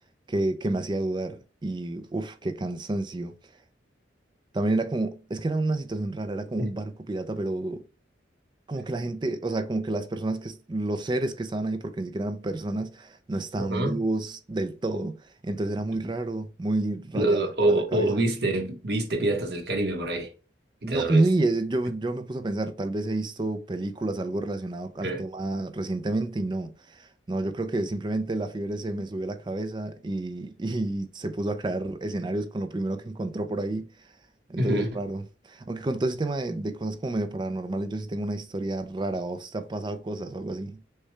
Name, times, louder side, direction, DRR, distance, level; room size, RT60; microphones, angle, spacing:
voice 1, 0.3-3.4 4.5-7.9 8.7-18.2 20.8-34.1 34.5-40.8, right 2 dB, 25° right, 0.4 m, -29 dB
voice 2, 13.6-14.0 17.1-20.3 20.8-21.2 25.0-25.2 34.6-34.9, right 1 dB, 60° right, 1.0 m, -26 dB
6.4 x 2.2 x 3.2 m
head